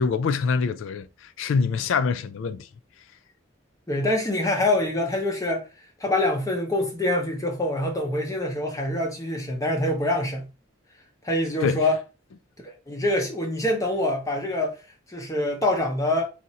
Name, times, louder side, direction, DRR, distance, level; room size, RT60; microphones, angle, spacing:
voice 1, 0.0-2.7 11.6-11.8, left 5 dB, 75° left, 0.3 m, -25 dB
voice 2, 3.9-5.6 6.0-10.4 11.2-12.0 12.6-14.8 15.1-16.3, left 1 dB, 15° left, 0.6 m, -25 dB
2.8 x 2.4 x 4.1 m
head